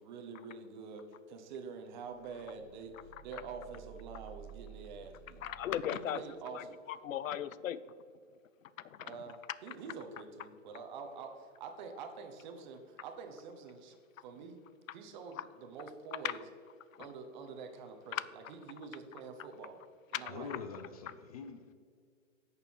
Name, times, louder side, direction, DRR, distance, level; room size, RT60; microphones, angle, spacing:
voice 1, 0.0-2.9 3.2-5.4 5.9-6.8 9.0-13.9 14.2-14.6 14.9-16.4 17.0-19.8 20.1-20.5, right 5 dB, 35° right, 6 dB, 1.1 m, -46 dB
sound 1, 2.1-5.8, right 7 dB, ahead, 1.6 m, -53 dB
voice 2, 5.4-6.2 6.5-7.8 8.6-9.2 15.3-15.4 16.2-16.4 16.9-17.1 18.1-18.2 19.1-19.2 20.1-20.2, left 10 dB, 85° left, 17 dB, 0.6 m, -37 dB
voice 3, 20.3-21.7, left 5 dB, 30° left, 8 dB, 0.5 m, -45 dB
11.0 x 6.8 x 4.7 m, 2.1 s
hypercardioid pair, 155°, 39 cm